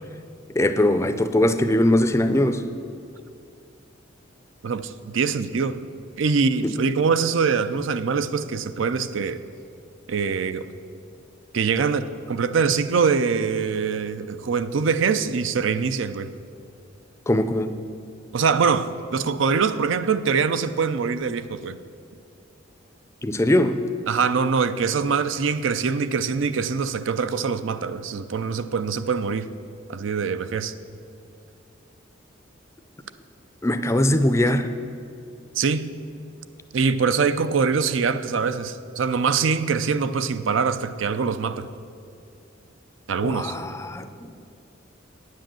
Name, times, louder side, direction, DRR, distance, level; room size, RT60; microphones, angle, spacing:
voice 1, 0.5-2.6 6.6-6.7 17.3-17.7 23.2-23.8 33.6-34.7 43.2-44.1, left 1 dB, 15° left, 9 dB, 0.5 m, -21 dB
voice 2, 4.6-5.8 6.2-9.4 10.1-10.7 11.5-16.3 18.3-21.8 24.1-29.5 29.9-30.7 35.6-35.9 36.7-41.7 43.1-43.5, right 5 dB, 70° right, 12 dB, 0.5 m, -23 dB
9.2 x 7.6 x 7.6 m, 2.4 s
head